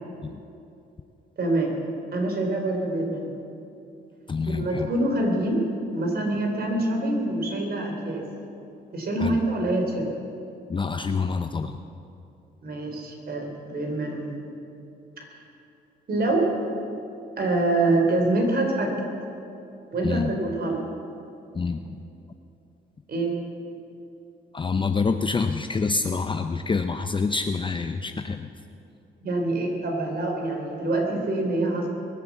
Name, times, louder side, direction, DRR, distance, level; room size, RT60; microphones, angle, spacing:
voice 1, 1.4-1.8 2.1-3.3 4.5-5.6 5.9-8.3 8.9-10.1 12.6-14.3 15.2-15.3 16.1-16.5 17.4-19.0 19.9-20.8 23.1-23.3 29.2-31.9, right 2 dB, 50° right, 2 dB, 3.6 m, -25 dB
voice 2, 4.3-4.9 9.2-9.4 10.7-11.8 20.0-20.4 21.5-22.0 24.5-28.5, left 4 dB, 25° left, 7 dB, 0.6 m, -27 dB
22.0 x 8.3 x 7.3 m, 2.8 s
cardioid pair, 90°, 20 cm